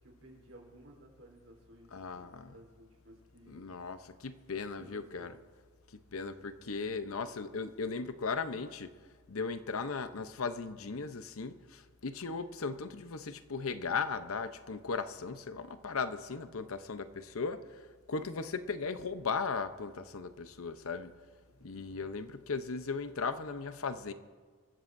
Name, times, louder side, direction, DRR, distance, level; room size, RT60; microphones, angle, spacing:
voice 1, 0.0-3.7 4.8-5.3 21.5-22.1, right 1 dB, 65° right, -1 dB, 3.9 m, -56 dB
voice 2, 1.9-2.5 3.5-5.3 6.1-8.9 9.3-21.1 21.6-24.1, left 4 dB, 75° left, 10 dB, 0.8 m, -37 dB
26.0 x 14.5 x 2.7 m, 1.5 s
head